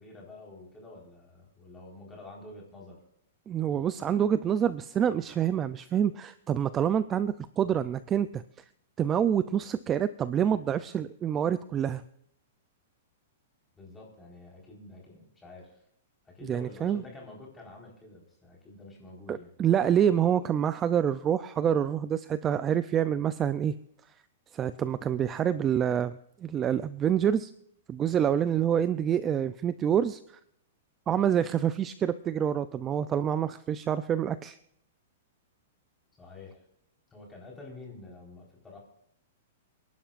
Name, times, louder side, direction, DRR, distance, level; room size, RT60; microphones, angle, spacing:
voice 1, 0.0-3.0 13.8-15.8 16.2-19.5 36.2-36.6 37.1-38.8, left 2 dB, 10° left, -2 dB, 4.2 m, -48 dB
voice 2, 3.5-8.4 9.0-12.0 16.4-17.0 19.3-23.7 24.5-27.5 27.9-30.2 31.1-34.6, right 9 dB, 15° right, 13 dB, 0.4 m, -27 dB
28.0 x 11.5 x 2.5 m, 0.73 s
hypercardioid pair, 170°, 0 cm